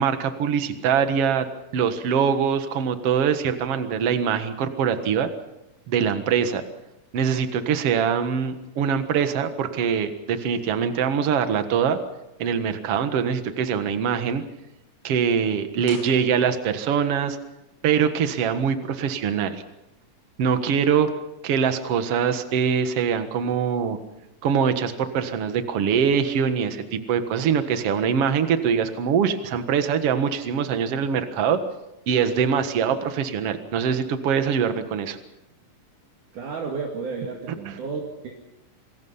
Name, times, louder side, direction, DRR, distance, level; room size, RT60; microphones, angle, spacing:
voice 1, 0.0-1.5 1.7-5.3 5.9-6.6 7.1-12.0 12.4-14.4 15.0-17.4 17.8-19.6 20.4-21.1 21.4-24.0 24.4-31.6 32.1-35.2, right 7 dB, 55° right, 8 dB, 2.3 m, -23 dB
sound 1, 15.8-16.9 17.2-17.3, left 2 dB, 25° left, 3.4 m, -44 dB
voice 2, 36.3-38.3, right 4 dB, 70° right, 0 dB, 3.8 m, -32 dB
27.5 x 21.5 x 5.7 m, 0.92 s
omnidirectional pair, 3.7 m